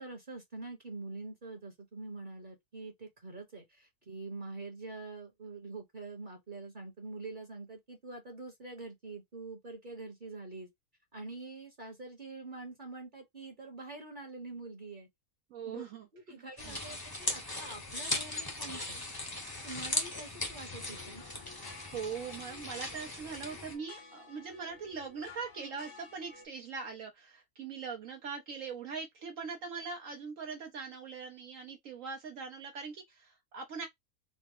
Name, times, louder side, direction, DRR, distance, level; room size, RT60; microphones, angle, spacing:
voice 1, 0.0-10.7 11.1-15.1 15.6-15.8 16.1-19.0 19.6-21.3, right 3 dB, 35° right, 1.1 m, -45 dB
voice 2, 15.5-16.8 21.9-33.9, right 5 dB, 65° right, 1.1 m, -41 dB
sound 1, 16.6-23.7, left 2 dB, 20° left, 0.8 m, -38 dB
sound 2, 20.7-26.5, left 4 dB, 60° left, 1.1 m, -54 dB
4.1 x 2.1 x 3.6 m
omnidirectional pair, 1.6 m